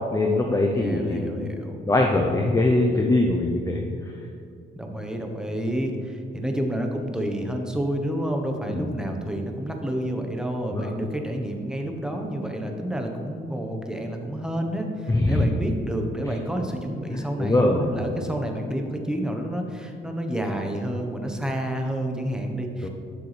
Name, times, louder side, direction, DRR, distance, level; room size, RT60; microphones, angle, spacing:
voice 1, 0.1-1.4 1.9-3.8 8.7-8.9 10.7-10.9 15.1-15.5 17.1-18.0 22.8-22.9, left 2 dB, 15° left, 1 dB, 0.7 m, -22 dB
voice 2, 0.7-1.8 4.7-22.9, right 1 dB, 5° right, 2 dB, 1.2 m, -29 dB
12.0 x 6.8 x 3.4 m, 2.3 s
cardioid pair, 90°, 20 cm